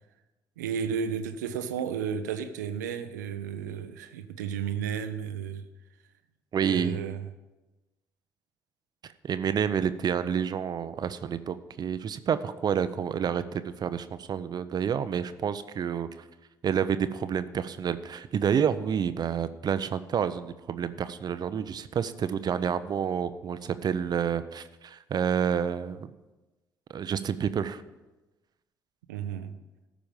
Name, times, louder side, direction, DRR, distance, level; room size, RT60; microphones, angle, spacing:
voice 1, 0.6-5.7 6.7-7.3 29.1-29.5, right 7 dB, 90° right, 0.6 m, -33 dB
voice 2, 6.5-7.0 9.0-16.2 16.6-26.1 26.9-27.8, right 7 dB, 50° right, 0.6 m, -29 dB
13.5 x 5.1 x 7.2 m
hypercardioid pair, 50°, 9 cm